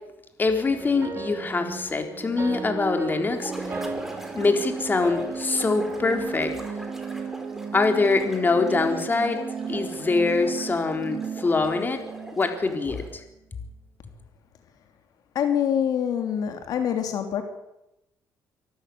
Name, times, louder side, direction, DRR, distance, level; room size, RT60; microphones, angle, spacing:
voice 1, 0.4-3.5 4.3-6.5 7.7-9.4 9.7-12.0 12.4-13.2, left 3 dB, 30° left, 5 dB, 4.0 m, -24 dB
sound 1, 0.7-13.0, right 5 dB, 35° right, 3.3 m, -35 dB
sound 2, 3.3-13.2, right 1 dB, 5° right, 5.0 m, -41 dB
voice 2, 15.3-17.4, left 9 dB, 70° left, 6 dB, 3.1 m, -25 dB
24.5 x 13.5 x 9.5 m, 0.89 s
cardioid pair, 90°, 7 cm